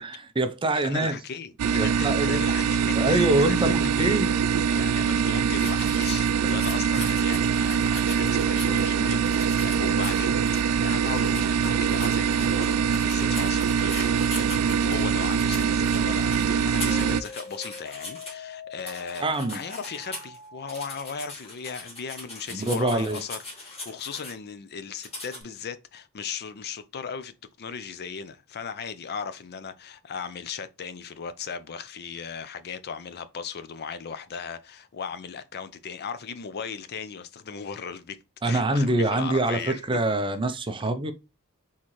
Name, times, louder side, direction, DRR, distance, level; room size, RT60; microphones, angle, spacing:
voice 1, 0.0-1.2 1.7-2.5 3.0-4.3 19.2-19.6 22.5-23.2 38.4-41.1, right 2 dB, 20° right, 0.5 m, -25 dB
voice 2, 0.8-1.5 1.8-4.3 4.7-38.2 38.4-40.0, left 6 dB, 45° left, 0.5 m, -37 dB
sound 1, 1.6-17.2, right 7 dB, 85° right, 0.3 m, -24 dB
sound 2, 5.6-8.8 9.2-10.6 11.0-18.3 18.8-20.4 20.7-24.3 25.0-25.4, left 2 dB, 25° left, 1.9 m, -40 dB
sound 3, 14.8-20.8, left 4 dB, 85° left, 0.9 m, -44 dB
4.3 x 3.7 x 3.0 m
head